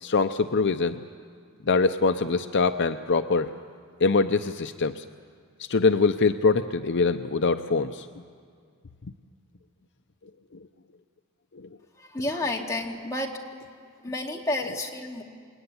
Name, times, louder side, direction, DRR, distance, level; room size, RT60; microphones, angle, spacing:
voice 1, 0.0-1.0 1.7-3.5 4.0-5.0 5.7-8.1, left 4 dB, 55° left, 8 dB, 0.7 m, -23 dB
voice 2, 12.0-13.3 14.0-15.2, left 1 dB, 15° left, 0 dB, 2.5 m, -30 dB
28.0 x 21.5 x 9.7 m, 2.2 s
head